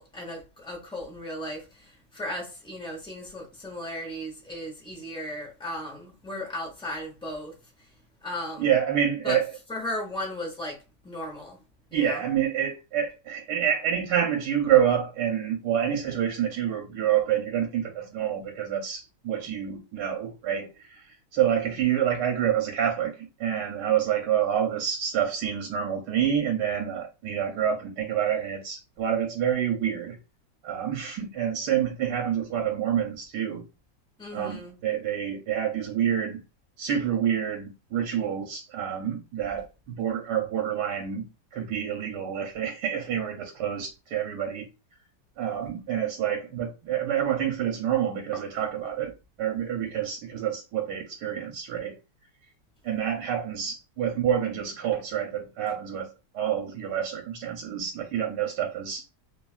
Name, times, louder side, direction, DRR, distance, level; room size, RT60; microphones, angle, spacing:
voice 1, 0.0-7.6 8.2-8.7 9.2-9.4 9.7-11.6 11.9-12.2 34.2-34.8, left 1 dB, 5° left, 0.5 m, -36 dB
voice 2, 8.6-9.5 11.9-21.0 21.3-30.2 30.6-33.6 34.3-36.4 36.8-44.7 45.4-52.0 52.8-59.0, right 9 dB, 75° right, 1.3 m, -27 dB
3.2 x 2.3 x 2.3 m
omnidirectional pair, 1.9 m